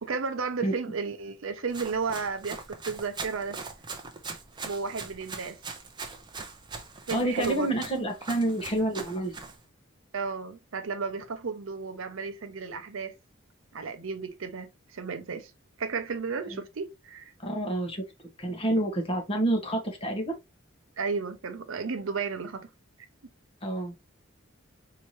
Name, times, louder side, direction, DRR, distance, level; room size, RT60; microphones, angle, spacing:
voice 1, 0.0-3.6 4.6-5.6 7.1-7.7 10.1-13.1 13.7-15.5 15.8-17.3 21.0-22.7, right 5 dB, 75° right, 0.6 m, -33 dB
Run, 1.7-9.6, right 4 dB, 20° right, 0.6 m, -41 dB
voice 2, 7.1-9.4 16.5-16.6 17.4-18.0 18.4-20.3 23.6-23.9, right 1 dB, 25° left, 1.1 m, -28 dB
4.5 x 2.9 x 3.0 m
head